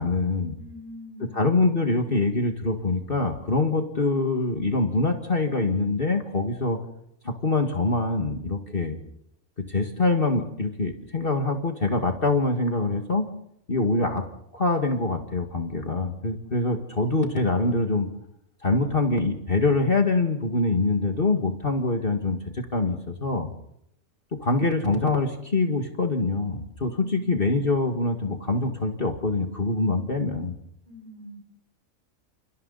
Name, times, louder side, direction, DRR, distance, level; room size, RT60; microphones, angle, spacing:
voice 1, 0.0-0.6 1.3-6.8 7.2-9.0 9.6-13.3 13.7-14.2 14.5-18.1 18.6-23.5 24.4-30.5, left 3 dB, 40° left, 4 dB, 2.2 m, -24 dB
voice 2, 0.5-1.4 27.0-27.5 30.8-31.4, left 1 dB, 30° right, 3 dB, 6.0 m, -44 dB
29.5 x 29.0 x 4.1 m, 0.73 s
omnidirectional pair, 1.5 m